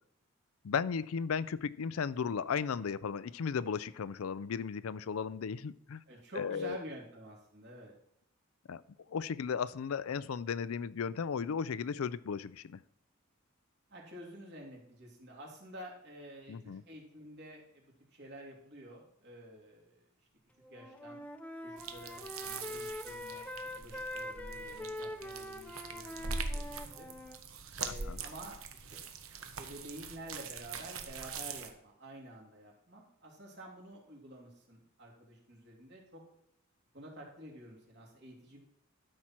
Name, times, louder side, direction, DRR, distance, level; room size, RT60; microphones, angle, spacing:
voice 1, 0.6-6.0 6.4-6.8 8.7-8.8 9.1-12.8 16.5-16.8 27.9-28.2, left 6 dB, 80° left, 18 dB, 0.4 m, -35 dB
voice 2, 6.1-7.9 13.9-20.1 20.7-21.2 21.6-27.1 27.8-29.0 29.6-36.2 36.9-38.6, right 1 dB, 55° right, -1 dB, 2.9 m, -50 dB
Wind instrument woodwind instrument, 20.6-27.4, left 1 dB, 5° left, 0.7 m, -43 dB
sound 1, 21.8-31.7, right 4 dB, 75° right, 1.1 m, -43 dB
12.5 x 6.0 x 4.4 m, 0.74 s
head